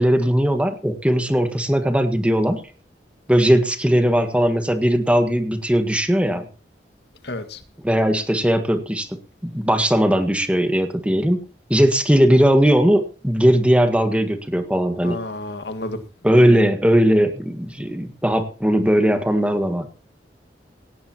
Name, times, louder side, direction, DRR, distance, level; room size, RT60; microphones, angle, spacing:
voice 1, 0.0-2.6 3.3-6.4 7.8-9.1 9.4-11.4 11.7-15.2 16.2-19.9, equal, 5° right, 8 dB, 1.6 m, -18 dB
voice 2, 7.2-7.6 15.0-16.0 16.3-16.6, left 2 dB, 70° left, 8 dB, 1.9 m, -31 dB
18.0 x 17.0 x 3.0 m, 0.37 s
head